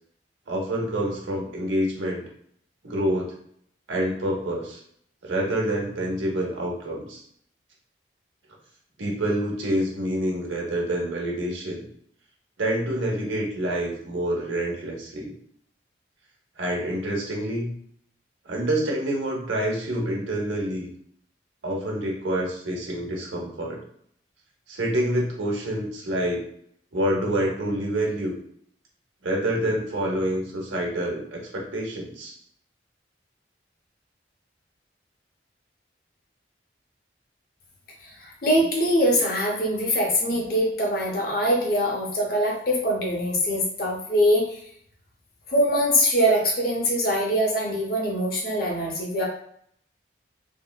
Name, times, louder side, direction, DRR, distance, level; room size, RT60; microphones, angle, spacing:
voice 1, 0.5-2.2 2.8-3.3 3.9-4.8 5.2-7.2 9.0-11.9 12.6-15.3 16.6-17.7 18.4-20.9 21.6-23.8 24.7-26.4 26.9-28.4 29.2-32.3, right 1 dB, 85° right, -2 dB, 0.9 m, -27 dB
voice 2, 38.0-44.6 45.5-49.3, equal, 50° left, -1 dB, 0.7 m, -23 dB
3.5 x 2.1 x 2.2 m, 0.66 s
head